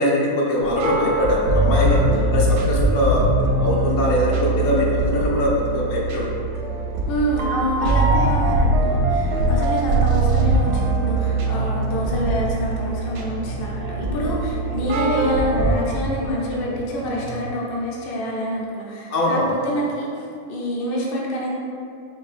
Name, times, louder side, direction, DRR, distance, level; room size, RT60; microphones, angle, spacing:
voice 1, 0.0-2.0 2.3-3.2 3.6-6.3 19.1-19.5, left 1 dB, 70° left, -4 dB, 1.1 m, -21 dB
sound 1, 0.6-15.7, right 2 dB, 75° right, 1.1 m, -22 dB
Musical instrument, 2.1-17.6, right 3 dB, 55° right, 0.7 m, -36 dB
voice 2, 7.1-21.5, equal, 55° left, -4 dB, 0.7 m, -27 dB
4.4 x 3.5 x 2.4 m, 2.5 s
omnidirectional pair, 1.6 m